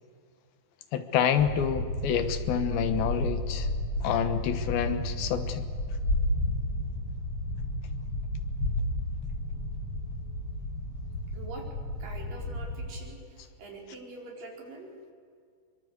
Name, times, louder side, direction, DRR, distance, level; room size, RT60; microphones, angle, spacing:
voice 1, 0.9-3.7 4.0-5.7, left 8 dB, 75° left, 10 dB, 3.0 m, -28 dB
sound 1, 1.4-12.9, left 1 dB, 40° left, 6.8 m, -32 dB
voice 2, 11.3-11.7 12.0-14.9, right 2 dB, 60° right, -1 dB, 6.1 m, -44 dB
24.5 x 23.5 x 8.1 m, 2.2 s
omnidirectional pair, 4.4 m